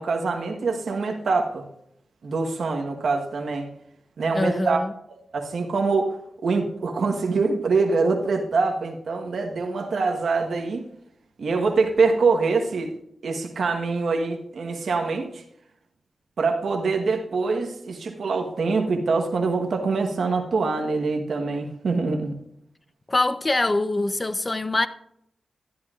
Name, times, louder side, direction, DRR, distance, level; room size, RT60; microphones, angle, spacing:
voice 1, 0.0-1.6 2.2-3.7 4.2-4.8 5.3-6.1 6.4-10.8 11.4-12.9 13.2-15.4 16.4-22.3, right 4 dB, 75° right, 1.2 m, -24 dB
voice 2, 4.3-4.9 23.1-24.9, left 2 dB, 30° left, 0.7 m, -24 dB
12.0 x 10.5 x 2.5 m
cardioid pair, 65°, 0 cm